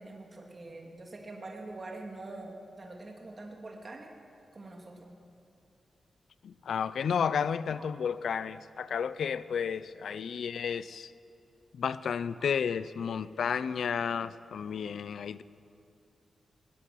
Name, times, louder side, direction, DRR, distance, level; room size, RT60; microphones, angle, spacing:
voice 1, 0.0-4.1 4.5-5.1 7.7-7.9 13.1-13.2, right 2 dB, 30° right, 2.8 m, -45 dB
voice 2, 6.4-11.1 11.7-15.4, left 7 dB, 75° left, 0.5 m, -32 dB
20.5 x 19.0 x 9.5 m
wide cardioid pair, 180°, 0 cm